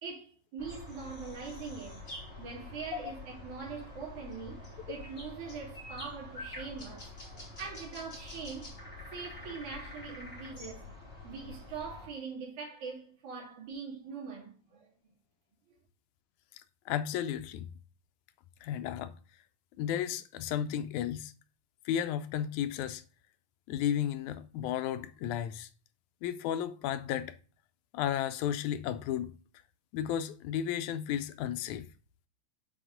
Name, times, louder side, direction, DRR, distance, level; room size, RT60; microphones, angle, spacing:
voice 1, 0.0-2.0 2.4-8.7 9.1-11.0 11.2-14.9 15.7-15.8, right 5 dB, 80° right, 3.8 m, -42 dB
sound 1, 0.6-12.1, left 2 dB, 20° left, 3.3 m, -46 dB
voice 2, 16.5-17.7 18.6-19.1 19.8-21.3 21.9-23.0 23.7-25.7 26.2-27.4 27.9-29.3 29.9-31.9, left 10 dB, 85° left, 2.1 m, -33 dB
7.7 x 5.0 x 3.8 m
omnidirectional pair, 3.4 m